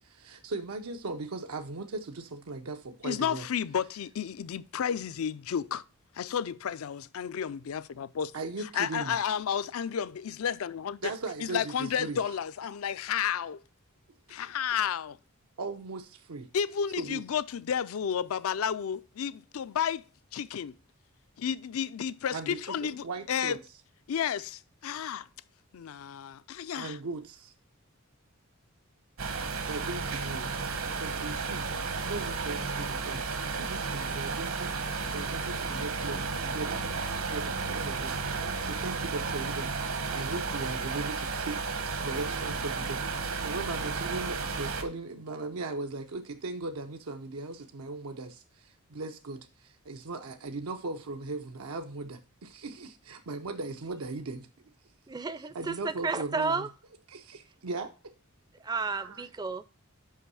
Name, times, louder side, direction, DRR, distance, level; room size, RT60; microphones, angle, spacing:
voice 1, 0.0-3.5 8.3-9.2 11.0-12.2 14.3-14.4 15.6-16.5 17.0-17.2 22.3-23.6 26.7-27.5 29.7-31.7 32.0-54.5 55.5-56.6 57.1-58.1 58.9-59.2, right 3 dB, 90° right, 0.7 m, -38 dB
voice 2, 3.0-5.8 6.1-8.3 8.7-11.1 11.4-13.6 14.3-15.2 16.5-20.0 20.3-20.7 21.4-23.6 24.1-25.3 25.7-27.0, left 8 dB, 75° left, 0.4 m, -32 dB
sound 1, 29.2-44.8, right 4 dB, 70° right, 1.1 m, -33 dB
voice 3, 55.1-56.7 58.5-59.6, right 4 dB, 20° right, 0.4 m, -32 dB
5.6 x 5.4 x 6.2 m
head